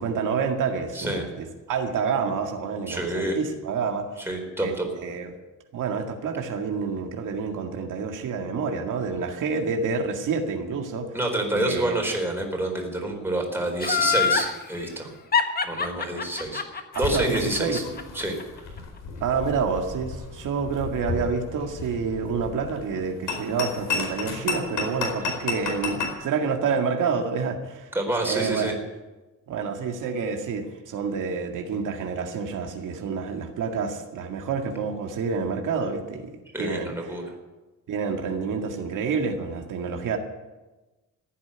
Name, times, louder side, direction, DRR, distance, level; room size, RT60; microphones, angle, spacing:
voice 1, 0.0-4.2 4.6-4.7 5.0-5.3 5.7-11.1 11.5-11.9 16.9-17.8 19.2-27.9 28.2-28.7 29.5-36.3 36.6-37.2 37.9-40.2, right 5 dB, 85° right, 3 dB, 2.0 m, -28 dB
voice 2, 0.9-1.3 2.9-3.4 4.2-4.9 11.1-15.1 15.6-17.8 18.1-18.4 25.2-25.4 27.9-28.7 36.5-37.2, right 1 dB, 5° right, 1 dB, 4.1 m, -28 dB
Laughter, 13.8-14.5 15.3-18.4 18.8-18.9, left 6 dB, 30° left, 1.4 m, -24 dB
sound 1, 16.9-26.1, left 4 dB, 90° left, 4.6 m, -33 dB
15.0 x 9.6 x 9.9 m, 1.1 s
cardioid pair, 130°, 30 cm